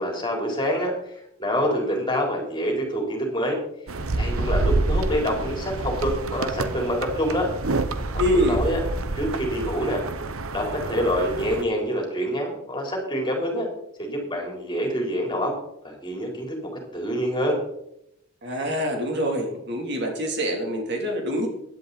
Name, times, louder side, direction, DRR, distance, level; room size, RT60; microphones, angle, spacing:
voice 1, 0.0-3.6 4.1-7.5 8.3-8.8 9.2-10.0 10.5-13.7 14.0-15.5 15.8-17.6, equal, 20° left, 1 dB, 3.8 m, -26 dB
sound 1, 3.9-11.6, right 2 dB, 90° right, 1.0 m, -28 dB
voice 2, 8.2-8.6 18.4-21.5, equal, 55° right, 1 dB, 3.0 m, -25 dB
16.5 x 11.0 x 4.1 m, 0.77 s
head